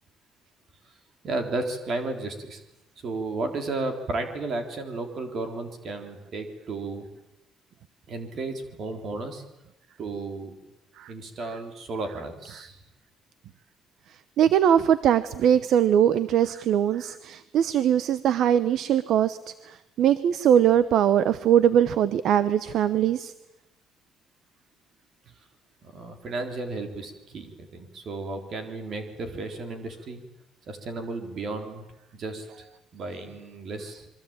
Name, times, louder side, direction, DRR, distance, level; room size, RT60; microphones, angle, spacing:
voice 1, 1.2-2.6 3.0-7.0 8.1-9.4 10.0-10.5 11.1-12.8 25.8-30.2 30.7-31.8 32.1-32.6 32.9-34.1, right 3 dB, 40° right, 6 dB, 3.6 m, -33 dB
voice 2, 14.4-19.4 19.7-23.3, right 9 dB, 55° right, 14 dB, 0.9 m, -21 dB
27.0 x 23.5 x 8.9 m, 0.97 s
cardioid pair, 180°, 0 cm